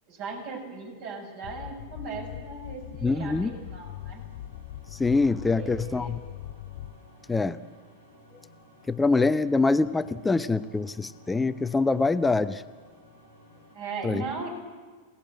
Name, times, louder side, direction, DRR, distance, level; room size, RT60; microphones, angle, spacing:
voice 1, 0.1-4.2 5.5-6.2 13.7-14.5, right 4 dB, 50° right, 2 dB, 7.4 m, -38 dB
sound 1, 1.2-13.8, left 1 dB, 80° right, 6.9 m, -56 dB
sound 2, 1.4-7.2, left 13 dB, 55° left, 0.6 m, -41 dB
voice 2, 3.0-3.5 4.9-6.2 7.3-7.6 8.9-12.6 14.0-14.2, left 3 dB, 10° left, 13 dB, 0.7 m, -24 dB
27.0 x 18.5 x 8.0 m, 1.5 s
figure-of-eight pair, 90°, 0 cm